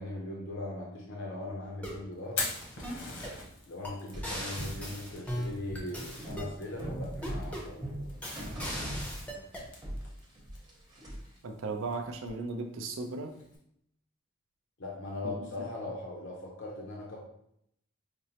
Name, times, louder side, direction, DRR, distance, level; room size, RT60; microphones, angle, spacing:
voice 1, 0.0-2.4 3.7-8.1 8.4-9.0 14.8-17.2, left 2 dB, 60° left, -2 dB, 0.6 m, -40 dB
sound 1, 1.6-2.0 2.4-3.4 3.8-3.9 4.2-6.5 7.2-7.7 8.2-9.7, equal, 5° left, 0.5 m, -39 dB
Fire, 2.1-13.6, left 3 dB, 80° left, 1.0 m, -45 dB
sound 2, 4.1-9.6 9.8-11.4, equal, 20° right, 0.8 m, -40 dB
voice 2, 11.4-13.4 15.2-15.4, right 3 dB, 70° right, 5 dB, 0.5 m, -36 dB
5.1 x 2.0 x 2.8 m, 0.73 s
head